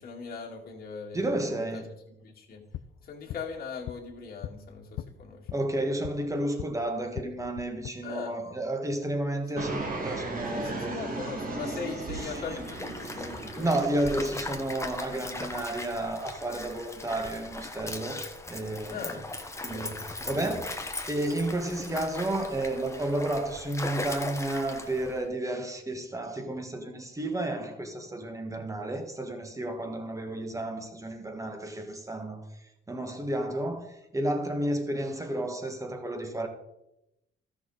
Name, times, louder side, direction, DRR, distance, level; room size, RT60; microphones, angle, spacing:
voice 1, 0.0-2.6 3.0-5.5 8.0-8.4 10.5-13.7 18.9-19.2 19.7-19.9, left 5 dB, 50° left, 2.1 m, -40 dB
voice 2, 1.1-1.9 5.5-11.0 11.7-11.8 12.1-12.4 13.0-13.1 13.6-19.2 19.6-36.5, right 1 dB, 15° right, 1.6 m, -32 dB
sound 1, 2.5-6.8 7.1-7.9, left 12 dB, 75° left, 0.5 m, -42 dB
Fixed-wing aircraft airplane, 9.6-15.0, right 2 dB, 45° right, 2.2 m, -36 dB
Stream, 12.2-25.2, left 2 dB, 15° left, 1.1 m, -39 dB
13.5 x 6.1 x 4.0 m
cardioid pair, 90°, 20 cm